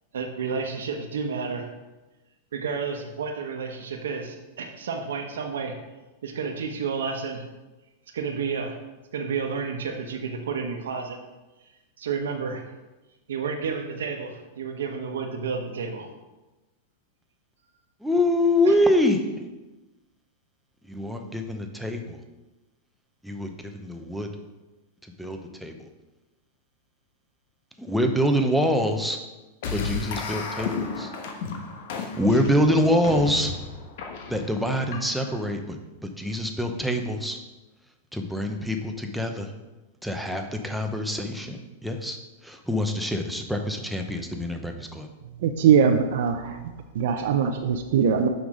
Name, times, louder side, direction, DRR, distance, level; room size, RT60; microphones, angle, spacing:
voice 1, 0.1-1.7 2.5-5.8 6.2-7.4 8.1-8.8 9.1-11.2 12.0-12.6 13.3-16.1 18.6-18.8, right 5 dB, 85° right, 3 dB, 1.0 m, -31 dB
voice 2, 18.0-19.5 20.9-22.2 23.2-24.3 25.2-25.9 27.8-29.2 29.7-31.1 31.9-33.5 34.3-37.4 38.1-39.5 40.0-45.1, left 1 dB, ahead, 4 dB, 0.8 m, -25 dB
sound 1, 29.6-35.4, left 4 dB, 65° left, 1.1 m, -33 dB
voice 3, 45.4-46.6 46.9-48.3, right 7 dB, 70° right, 5 dB, 0.6 m, -21 dB
6.1 x 5.2 x 4.9 m, 1.1 s
hypercardioid pair, 130°, 0 cm